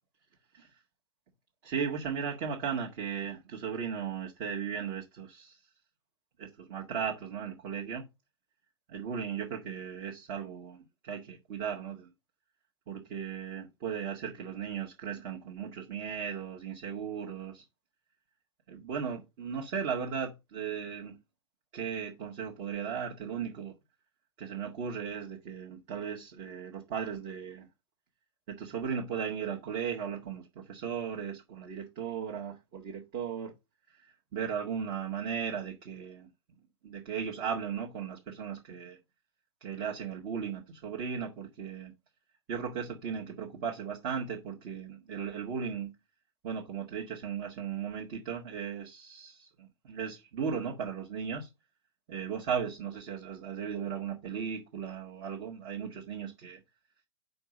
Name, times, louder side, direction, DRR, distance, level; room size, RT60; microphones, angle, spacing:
voice 1, 1.6-5.6 6.4-8.0 8.9-12.1 12.9-17.6 18.7-21.1 21.7-23.7 24.4-27.7 28.5-33.5 34.3-36.3 36.8-39.0 39.6-41.9 42.5-45.9 46.4-51.5 52.1-56.6, right 7 dB, 45° right, 1.6 m, -36 dB
5.5 x 4.4 x 6.3 m
hypercardioid pair, 110°, 15 cm